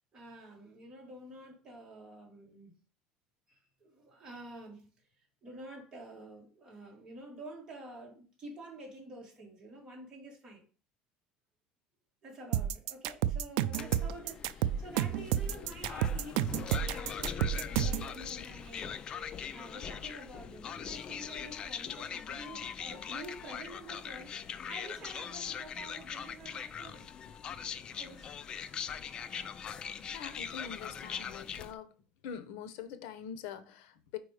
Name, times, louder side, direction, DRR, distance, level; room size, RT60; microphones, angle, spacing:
voice 1, 0.1-2.7 3.5-4.9 5.4-10.6 12.2-27.1 27.9-28.3, right 1 dB, 20° right, 1.9 m, -49 dB
sound 1, 12.5-18.1, right 11 dB, 85° right, 0.4 m, -30 dB
sound 2, 13.7-31.7, left 7 dB, 25° left, 0.3 m, -41 dB
voice 2, 30.1-31.9 32.2-34.2, left 8 dB, 80° left, 0.7 m, -44 dB
4.7 x 4.7 x 4.9 m
cardioid pair, 165°, 3 cm